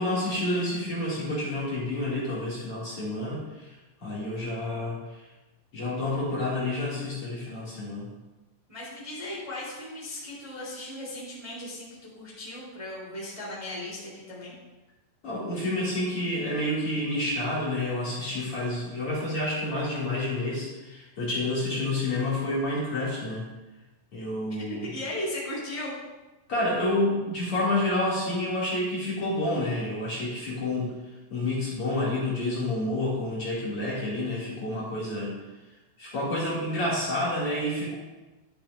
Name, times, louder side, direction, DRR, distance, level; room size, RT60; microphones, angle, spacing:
voice 1, 0.0-5.2 5.7-8.1 15.2-23.5 24.1-24.9 26.5-30.9 31.3-35.3 36.0-38.0, left 1 dB, 40° left, -7 dB, 2.2 m, -29 dB
voice 2, 8.7-11.9 12.1-14.5 24.8-25.9, left 1 dB, 15° right, -6 dB, 1.2 m, -36 dB
11.5 x 10.0 x 2.5 m, 1.1 s
omnidirectional pair, 6.0 m